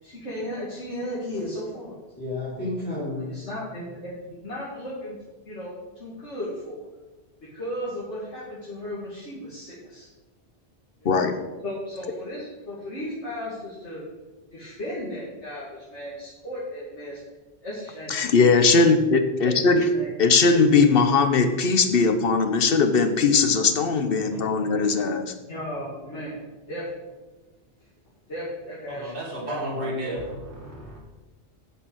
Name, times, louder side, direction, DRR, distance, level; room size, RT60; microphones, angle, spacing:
voice 1, 0.0-2.0 3.3-5.2 5.4-5.7 6.0-6.8 7.4-10.1 11.0-11.2 11.6-14.0 14.5-17.2 17.6-18.1 19.4-20.1 24.3-24.8 25.5-26.8 28.3-29.1 29.4-29.6 30.1-30.2, equal, 85° left, -9 dB, 2.9 m, -35 dB
voice 2, 2.2-3.3 29.6-30.1, left 2 dB, 10° left, -11 dB, 3.6 m, -31 dB
voice 3, 11.0-11.4 18.1-19.8 20.2-25.3, left 4 dB, 60° left, 8 dB, 1.1 m, -19 dB
voice 4, 28.9-31.0, right 2 dB, 55° right, -4 dB, 2.3 m, -35 dB
9.1 x 6.9 x 6.4 m, 1.2 s
omnidirectional pair, 1.1 m